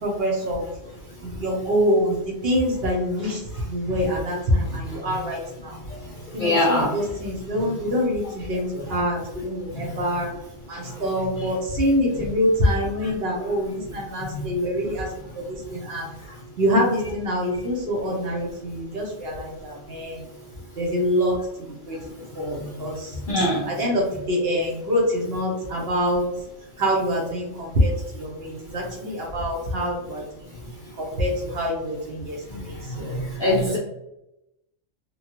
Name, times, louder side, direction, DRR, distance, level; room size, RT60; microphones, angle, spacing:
voice 1, 0.0-0.7 1.2-5.8 6.3-10.3 10.7-16.1 16.6-20.2 20.8-22.0 22.3-26.3 26.8-30.5 30.9-33.8, equal, 55° right, -2 dB, 0.9 m, -25 dB
voice 2, 6.4-6.9 14.3-14.4 23.3-23.6 33.4-33.8, left 1 dB, 60° left, -3 dB, 0.5 m, -21 dB
3.0 x 2.3 x 2.8 m, 0.88 s
omnidirectional pair, 1.3 m